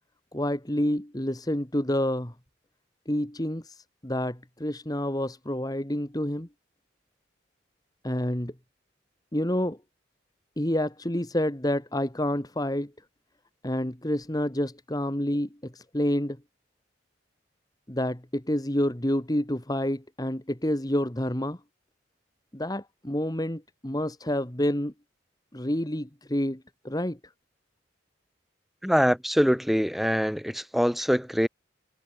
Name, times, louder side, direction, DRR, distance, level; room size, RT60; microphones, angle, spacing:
voice 1, 0.3-2.3 3.1-6.5 8.0-8.5 9.3-9.8 10.6-12.9 13.6-16.4 17.9-21.6 22.5-24.9 25.5-27.3, left 1 dB, 20° left, 1.9 m, -28 dB
voice 2, 28.8-31.5, equal, ahead, 4.9 m, -24 dB
head